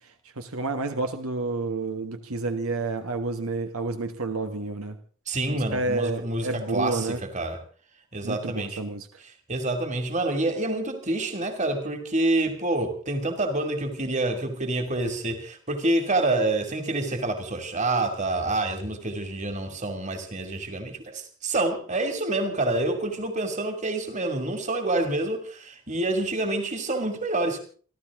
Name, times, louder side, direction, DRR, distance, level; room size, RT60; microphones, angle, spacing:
voice 1, 0.4-5.0 5.5-7.2 8.2-9.1, right 3 dB, 80° right, 7 dB, 1.5 m, -29 dB
voice 2, 5.3-7.6 8.1-8.8 9.5-27.6, right 2 dB, 35° right, 7 dB, 2.5 m, -27 dB
28.5 x 12.5 x 3.7 m, 0.42 s
head